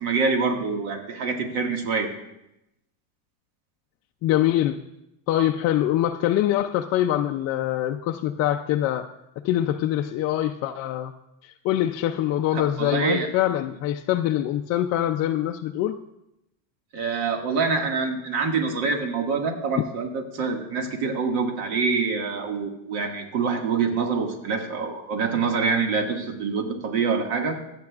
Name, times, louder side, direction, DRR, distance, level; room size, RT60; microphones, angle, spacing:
voice 1, 0.0-2.1 12.5-13.3 16.9-27.5, right 4 dB, 60° right, 2 dB, 1.9 m, -25 dB
voice 2, 4.2-4.8 5.3-9.1 9.4-11.1 11.4-16.0, left 12 dB, 40° left, 3 dB, 0.4 m, -24 dB
26.0 x 8.8 x 2.4 m, 0.87 s
cardioid pair, 145°, 44 cm